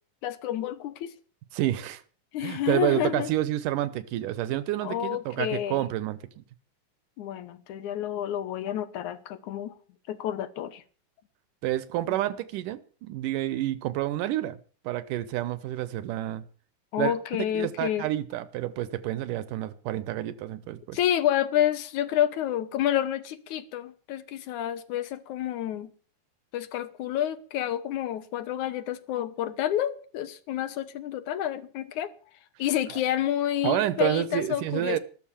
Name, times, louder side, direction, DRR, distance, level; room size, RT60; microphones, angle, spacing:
voice 1, 0.2-1.1 2.3-3.3 4.8-5.8 7.2-9.8 10.1-10.8 16.9-18.1 20.9-25.9 26.5-32.1 32.6-35.0, left 11 dB, 70° left, 2.4 m, -29 dB
voice 2, 1.5-2.0 2.4-6.4 11.6-14.6 14.8-16.4 17.0-17.1 17.5-21.0 33.6-35.0, right 14 dB, 85° right, 2.5 m, -29 dB
14.0 x 12.0 x 7.2 m
omnidirectional pair, 3.7 m